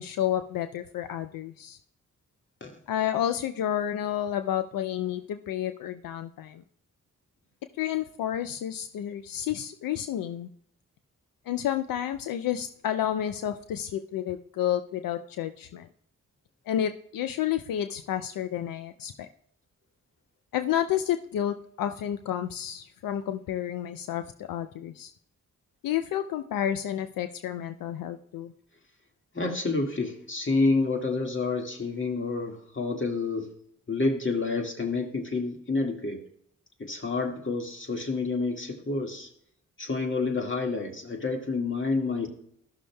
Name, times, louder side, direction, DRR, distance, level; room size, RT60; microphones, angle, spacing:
voice 1, 0.0-1.8 2.9-6.6 7.8-10.5 11.5-15.9 16.7-19.3 20.5-25.1 25.8-28.5, left 11 dB, 80° left, 10 dB, 0.5 m, -30 dB
voice 2, 29.3-33.5 33.9-36.2 36.8-39.3 39.8-42.3, left 3 dB, 35° left, 3 dB, 1.8 m, -28 dB
14.0 x 6.2 x 2.2 m, 0.67 s
supercardioid pair, 45°, 33 cm